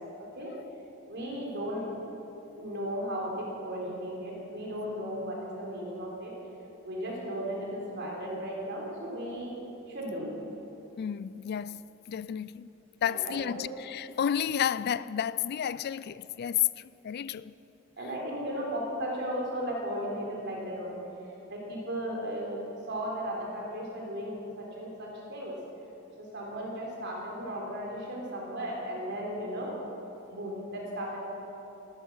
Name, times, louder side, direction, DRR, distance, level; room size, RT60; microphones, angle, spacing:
voice 1, 0.2-0.5 1.1-1.9 2.6-6.3 6.8-9.5 9.9-10.4 13.0-13.7 18.0-21.0 21.5-25.5 26.2-29.7 30.3-31.2, equal, 55° right, 3.8 m, -35 dB
voice 2, 11.0-12.7 13.0-17.5, left 9 dB, 50° left, 0.3 m, -31 dB
14.5 x 13.5 x 6.3 m
head